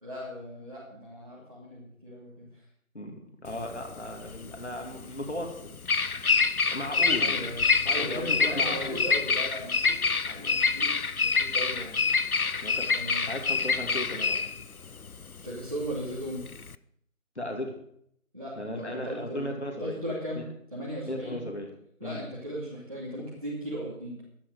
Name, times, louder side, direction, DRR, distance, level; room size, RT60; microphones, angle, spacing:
voice 1, 0.0-2.6 7.2-11.9 12.9-13.3 15.4-16.4 18.3-19.5 19.8-20.5 20.7-21.4 22.0-24.2, equal, 25° right, -7 dB, 2.4 m, -37 dB
voice 2, 2.9-5.6 6.7-7.4 8.0-9.1 12.6-12.9 13.3-14.6 17.4-17.8 18.6-20.0 20.3-20.4 21.1-21.7 22.0-22.2, left 1 dB, 50° left, 2 dB, 2.6 m, -36 dB
Bird vocalization bird call bird song, 3.5-16.7, left 4 dB, 80° left, 0.8 m, -27 dB
11.5 x 11.0 x 6.5 m, 0.69 s
figure-of-eight pair, 175°, 42 cm